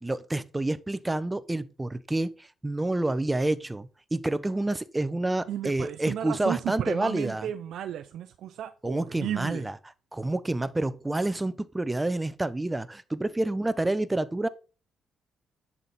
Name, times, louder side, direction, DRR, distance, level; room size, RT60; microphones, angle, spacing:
voice 1, 0.0-7.5 8.8-9.8 10.1-14.5, right 2 dB, 15° right, 0.7 m, -28 dB
voice 2, 5.5-9.7, right 10 dB, 75° right, 0.5 m, -34 dB
10.5 x 6.0 x 4.1 m
cardioid pair, 90°, 0 cm